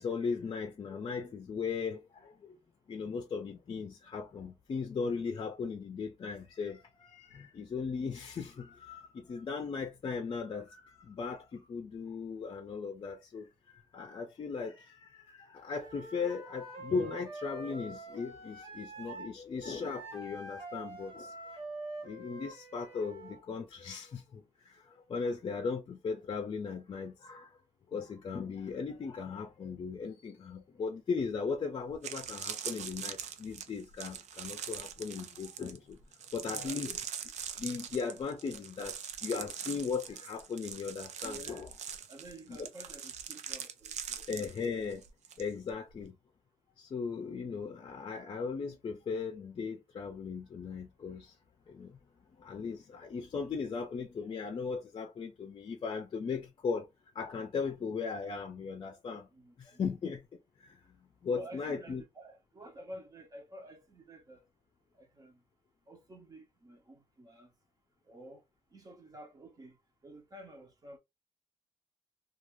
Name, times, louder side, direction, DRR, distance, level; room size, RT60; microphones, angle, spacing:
voice 1, 0.0-2.6 2.9-21.3 22.0-27.6 27.9-36.0 36.3-36.9 37.6-41.7 42.5-42.7 44.3-45.0 45.4-46.2 46.8-51.4 51.7-52.0 52.4-56.9 57.1-59.3 59.6-60.2 60.6-60.8 61.2-62.0, left 5 dB, 45° left, 0.5 m, -37 dB
Wind instrument woodwind instrument, 15.8-19.3 19.6-23.4, right 2 dB, 50° right, 1.2 m, -45 dB
sound 1, 31.4-31.5 31.9-45.4 45.7-46.0, right 8 dB, 80° right, 0.4 m, -42 dB
voice 2, 36.5-37.0 41.2-41.7 42.1-44.3 59.3-59.8 61.3-64.4 64.9-65.4 65.9-67.5 68.1-68.4 68.7-69.8 70.0-71.0, right 1 dB, 30° right, 0.7 m, -51 dB
2.5 x 2.4 x 3.0 m
wide cardioid pair, 140°, 12 cm